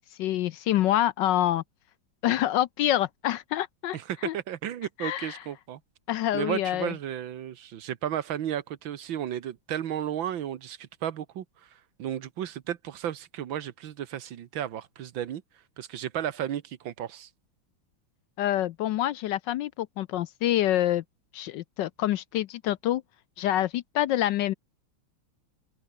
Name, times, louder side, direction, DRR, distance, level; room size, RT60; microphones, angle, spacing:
voice 1, 0.0-1.6 2.2-4.0 4.2-4.3 5.0-5.4 6.1-6.9 18.4-21.0 21.3-23.0 23.4-24.5, left 13 dB, 75° left, 1.2 m, -26 dB
voice 2, 3.9-5.8 6.3-15.4 15.8-17.3, right 10 dB, 70° right, 1.8 m, -34 dB
open air
omnidirectional pair, 2.2 m